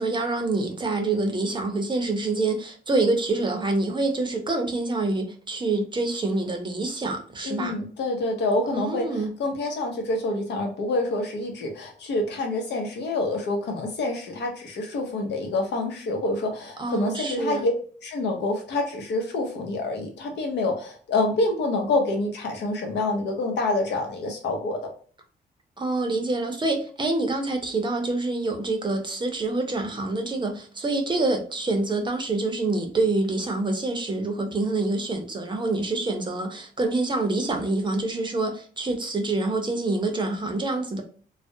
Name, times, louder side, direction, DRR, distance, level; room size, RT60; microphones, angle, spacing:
voice 1, 0.0-7.7 8.7-9.3 16.8-17.6 25.8-41.0, right 2 dB, 25° right, 0.5 m, -26 dB
voice 2, 7.4-17.7 18.0-24.8, left 2 dB, 75° left, 0.7 m, -27 dB
2.4 x 2.0 x 2.6 m
cardioid pair, 85°, 18 cm